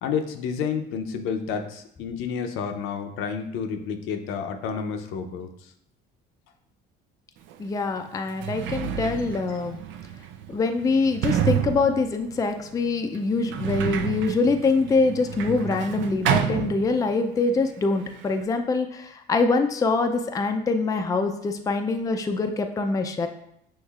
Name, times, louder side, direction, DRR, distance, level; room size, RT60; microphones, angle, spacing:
voice 1, 0.0-5.7 9.2-9.7, left 6 dB, 75° left, 6 dB, 0.6 m, -30 dB
Sliding door, 7.5-7.6 8.2-17.4 17.6-18.4, right 9 dB, 65° right, 0.4 m, -30 dB
voice 2, 7.6-9.8 10.5-23.3, left 3 dB, 15° left, 6 dB, 0.4 m, -24 dB
6.3 x 3.1 x 2.4 m, 0.75 s
cardioid pair, 105°, 21 cm